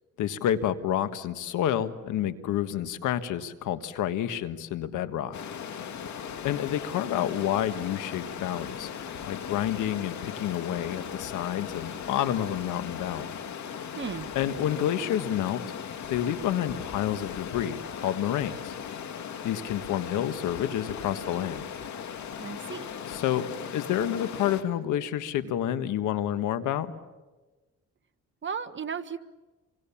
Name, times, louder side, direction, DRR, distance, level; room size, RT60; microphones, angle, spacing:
voice 1, 0.2-5.4 6.4-8.9 9.3-13.3 14.3-15.6 16.1-18.7 19.4-21.7 23.1-26.9, left 11 dB, 85° left, 11 dB, 1.5 m, -29 dB
Stream, 5.3-24.6, left 8 dB, 70° left, 2.4 m, -38 dB
voice 2, 14.0-14.3 22.4-22.9 28.4-29.2, right 6 dB, 40° right, 8 dB, 1.4 m, -35 dB
28.0 x 24.5 x 7.3 m, 1.2 s
cardioid pair, 90°, 30 cm